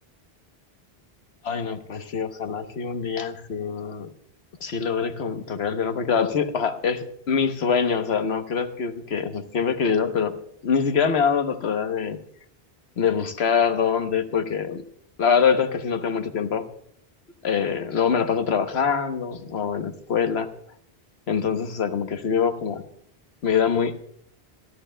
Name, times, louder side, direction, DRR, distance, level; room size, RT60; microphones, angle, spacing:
voice 1, 1.4-4.1 4.6-10.4 10.6-12.2 13.0-14.8 15.2-16.6 17.4-20.5 21.3-22.8 23.4-24.1, left 6 dB, 75° left, 8 dB, 1.2 m, -24 dB
27.0 x 13.5 x 2.2 m, 0.69 s
omnidirectional pair, 1.1 m